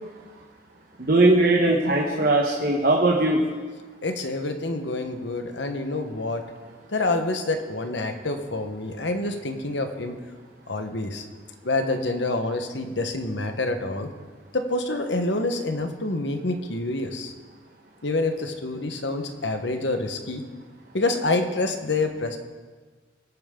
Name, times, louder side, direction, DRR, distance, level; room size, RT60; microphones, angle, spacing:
voice 1, 1.0-3.4, right 2 dB, 50° right, 0 dB, 1.2 m, -19 dB
voice 2, 4.0-6.4 6.9-10.1 10.7-11.2 11.6-14.1 14.5-17.3 18.0-20.4 20.9-22.4, left 2 dB, 70° left, 6 dB, 1.2 m, -27 dB
20.5 x 8.8 x 3.8 m, 1.4 s
head